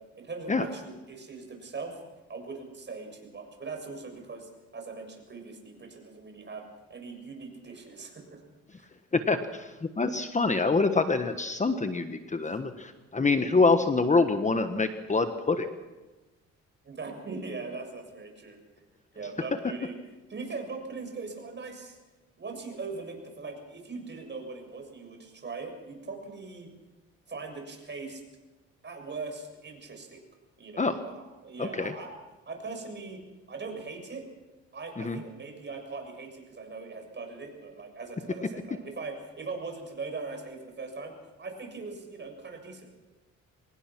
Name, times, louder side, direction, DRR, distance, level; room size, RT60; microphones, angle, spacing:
voice 1, 0.0-2.0 2.3-6.6 6.9-8.4 8.8-8.9 12.4-12.6 16.8-18.8 19.1-20.0 20.3-22.0 22.4-26.7 27.3-28.2 28.8-30.2 30.6-32.1 32.5-33.2 33.5-34.3 34.7-43.0, right 4 dB, 35° right, 4 dB, 6.7 m, -40 dB
voice 2, 9.1-9.7 10.0-15.7 30.8-31.0 31.6-31.9 35.0-35.2, left 3 dB, 25° left, 8 dB, 1.3 m, -25 dB
25.0 x 19.5 x 6.1 m, 1.2 s
cardioid pair, 90°, 30 cm